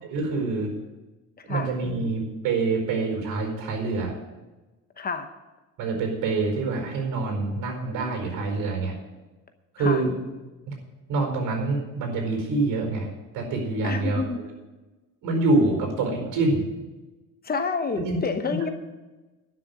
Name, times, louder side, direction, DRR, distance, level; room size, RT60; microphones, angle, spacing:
voice 1, 0.0-0.7 1.5-4.1 5.8-9.0 9.7-10.1 10.7-10.8 11.1-13.1 13.3-14.2 15.2-16.7 17.9-18.2 18.4-18.6, right 3 dB, 75° right, 2 dB, 4.6 m, -26 dB
voice 2, 5.0-5.3 9.8-10.0 13.8-14.4 17.4-18.7, left 5 dB, 30° left, 8 dB, 0.9 m, -28 dB
11.5 x 6.7 x 9.3 m, 1.2 s
cardioid pair, 135°, 33 cm